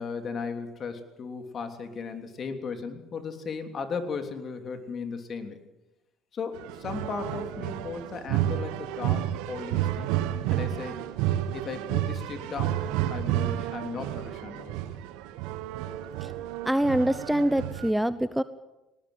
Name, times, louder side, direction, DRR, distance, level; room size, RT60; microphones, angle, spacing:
voice 1, 0.0-5.6 6.3-10.1 10.5-11.0 11.5-12.8 13.1-14.8, left 5 dB, 45° left, 7 dB, 3.3 m, -36 dB
sound 1, 6.5-17.9, right 12 dB, 80° right, 1.4 m, -31 dB
voice 2, 16.6-18.4, right 1 dB, 5° right, 14 dB, 0.9 m, -25 dB
19.5 x 19.0 x 8.1 m, 1.0 s
supercardioid pair, 75°, 0 cm